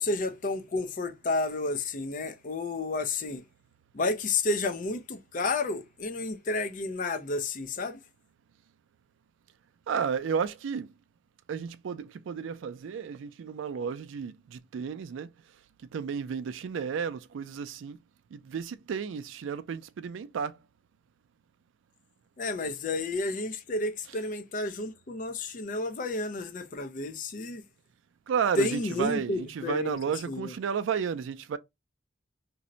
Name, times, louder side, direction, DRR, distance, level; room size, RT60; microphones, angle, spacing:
voice 1, 0.0-3.4 3.9-8.0 22.4-27.6 28.6-30.5, left 2 dB, 40° left, 0.4 m, -31 dB
voice 2, 9.9-10.9 11.5-15.3 15.9-18.0 18.3-20.5 28.3-31.6, right 6 dB, 85° right, 0.3 m, -32 dB
2.6 x 2.1 x 3.7 m
head